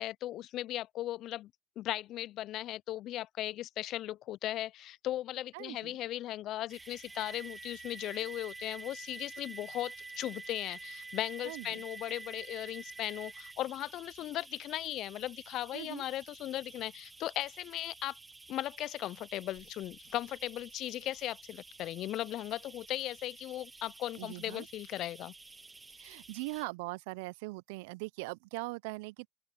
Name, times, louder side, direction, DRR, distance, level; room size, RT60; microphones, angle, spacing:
voice 1, 0.0-1.5 1.8-18.2 18.5-25.3, left 14 dB, 55° left, 0.3 m, -37 dB
voice 2, 5.5-6.0 11.4-11.8 15.7-16.0 24.2-24.7 26.0-29.3, right 25 dB, 80° right, 0.5 m, -41 dB
sound 1, 6.7-26.6, right 3 dB, 15° right, 0.6 m, -50 dB
open air
supercardioid pair, 105°, 0 cm